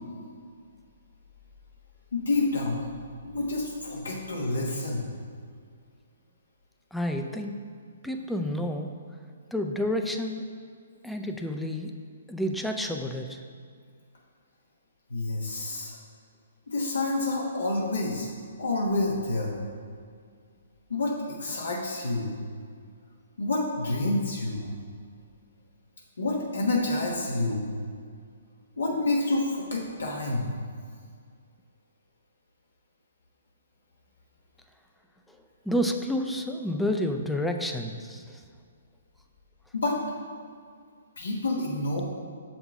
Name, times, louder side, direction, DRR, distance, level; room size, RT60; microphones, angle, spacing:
voice 1, 2.1-2.8 3.2-5.1 15.1-16.0 16.7-18.3 18.6-19.6 20.9-21.1 21.4-22.3 23.4-24.7 26.2-27.7 28.8-30.5 39.7-40.0 41.2-42.0, left 2 dB, 80° left, -3 dB, 1.2 m, -28 dB
voice 2, 6.9-7.6 8.0-9.0 9.5-10.5 11.0-11.9 12.3-13.4 35.3-35.4 35.6-38.4, equal, ahead, 4 dB, 0.5 m, -29 dB
6.9 x 5.7 x 3.5 m, 2.1 s
hypercardioid pair, 135°, 0 cm